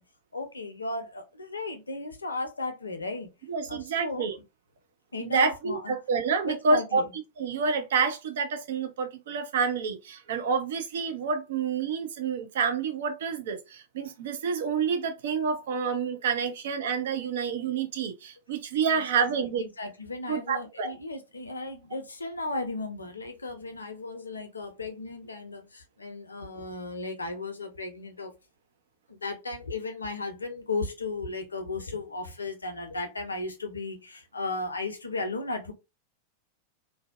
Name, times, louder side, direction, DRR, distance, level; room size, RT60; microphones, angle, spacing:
voice 1, 0.3-3.3 3.7-4.4 5.1-5.9 6.4-7.1 18.9-19.3 19.6-28.3 29.1-35.7, left 2 dB, 80° left, 0.5 m, -35 dB
voice 2, 3.5-4.4 5.2-7.0 7.4-19.7 20.3-21.0, right 5 dB, 60° right, 0.4 m, -28 dB
2.6 x 2.1 x 2.3 m
figure-of-eight pair, 90°, 0 cm